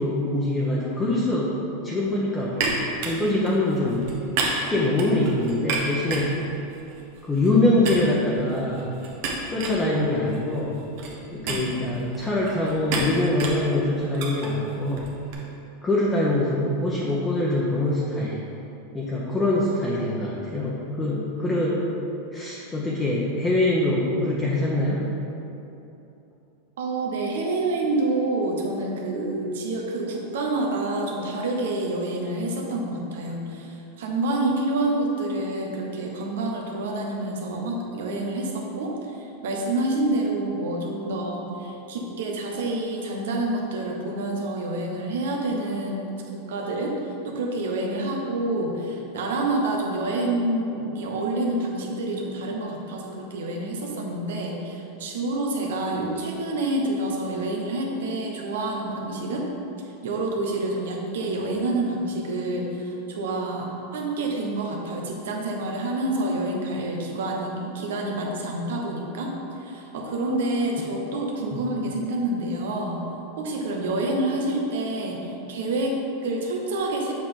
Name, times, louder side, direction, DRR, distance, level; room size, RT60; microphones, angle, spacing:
voice 1, 0.0-1.5 1.8-4.0 4.7-6.4 7.2-8.9 9.5-10.8 11.3-15.1 15.8-18.4 18.9-21.8 22.3-25.0 71.5-71.6, left 1 dB, 15° left, -6 dB, 1.0 m, -24 dB
sound 1, 2.5-7.6 7.8-15.3, right 3 dB, 60° right, 1.3 m, -32 dB
voice 2, 26.8-46.0 46.3-59.5 60.0-69.3 69.6-73.0 73.4-77.1, right 2 dB, 80° right, 0 dB, 1.2 m, -28 dB
7.4 x 4.9 x 3.9 m, 2.8 s
supercardioid pair, 130°, 0 cm